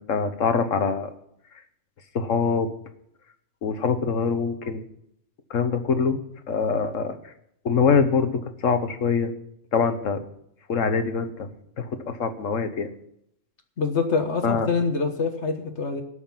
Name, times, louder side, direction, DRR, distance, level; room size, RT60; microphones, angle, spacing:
voice 1, 0.1-1.1 2.1-2.7 3.6-4.8 5.5-6.2 6.5-7.2 7.6-9.3 9.7-10.2 10.7-11.5 11.8-12.9 14.4-14.7, left 5 dB, 80° left, 9 dB, 1.5 m, -24 dB
voice 2, 13.8-16.0, left 4 dB, 60° left, 6 dB, 1.6 m, -25 dB
18.0 x 6.5 x 7.2 m, 0.74 s
omnidirectional pair, 1.3 m